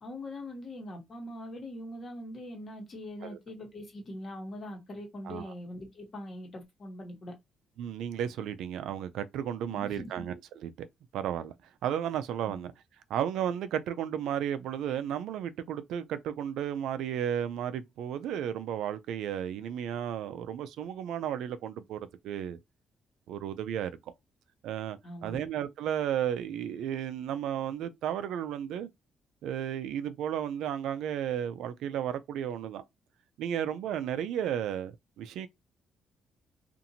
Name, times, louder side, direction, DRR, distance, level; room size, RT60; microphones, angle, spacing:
voice 1, 0.0-7.3 9.7-10.2 12.5-12.6 25.0-25.4, left 1 dB, 45° left, 1.2 m, -42 dB
voice 2, 7.8-10.9 11.1-11.5 11.8-12.7 13.1-22.0 22.2-22.6 23.3-23.9 24.6-28.9 29.4-32.8 33.4-35.5, right 9 dB, 85° right, 0.3 m, -33 dB
2.7 x 2.5 x 2.7 m
cardioid pair, 90°, 0 cm